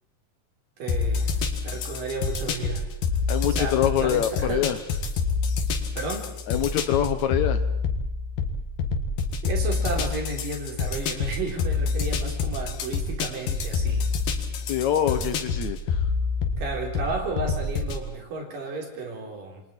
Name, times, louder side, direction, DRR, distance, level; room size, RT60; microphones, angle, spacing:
voice 1, 0.8-1.3 1.6-2.8 3.5-4.7 6.0-6.3 9.4-14.1 16.6-19.6, right 3 dB, 75° right, 1 dB, 5.5 m, -33 dB
sound 1, 0.9-18.0, left 4 dB, 90° left, 3.6 m, -27 dB
voice 2, 3.3-4.8 6.5-7.6 14.7-15.8, left 10 dB, 65° left, 10 dB, 2.1 m, -24 dB
28.5 x 25.0 x 4.5 m, 0.84 s
omnidirectional pair, 3.9 m